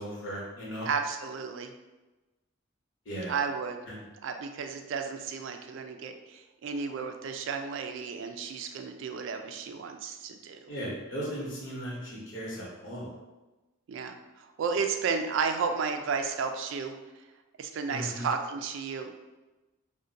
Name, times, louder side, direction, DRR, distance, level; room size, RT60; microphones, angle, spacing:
voice 1, 0.0-0.9 3.1-3.4 3.9-4.0 10.7-13.1 17.9-18.3, equal, 65° left, -5 dB, 1.0 m, -37 dB
voice 2, 0.8-1.7 3.3-3.8 4.2-10.7 13.9-16.9 17.6-19.2, right 5 dB, 65° right, 6 dB, 0.3 m, -33 dB
2.5 x 2.1 x 3.9 m, 1.1 s
head